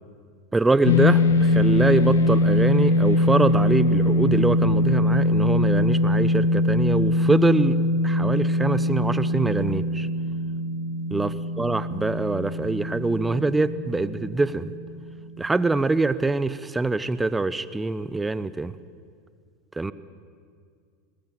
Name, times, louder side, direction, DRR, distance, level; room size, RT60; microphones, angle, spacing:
voice 1, 0.5-7.8 8.0-10.1 11.1-14.7 15.4-18.7 19.8-19.9, right 3 dB, 10° right, 15 dB, 0.9 m, -24 dB
sound 1, 0.8-15.3, left 1 dB, 85° left, 1.6 m, -22 dB
21.0 x 20.0 x 9.1 m, 2.1 s
hypercardioid pair, 95°, 0 cm